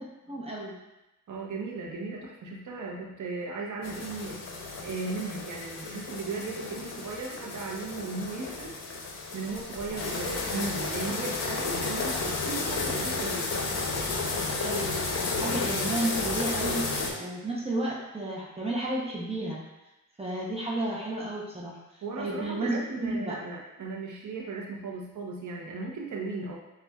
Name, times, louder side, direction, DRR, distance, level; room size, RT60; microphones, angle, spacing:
voice 1, 0.2-0.8 9.9-10.1 14.6-15.0 15.3-19.6 20.2-21.8 22.2-23.4, right 1 dB, 20° right, -5 dB, 0.7 m, -32 dB
voice 2, 1.3-4.4 4.8-8.8 9.3-13.5 22.0-26.6, right 3 dB, 65° right, -1 dB, 0.8 m, -36 dB
sound 1, 3.8-17.1, left 3 dB, 55° left, 0.7 m, -32 dB
7.1 x 2.4 x 2.3 m, 0.98 s
cardioid pair, 85°, 32 cm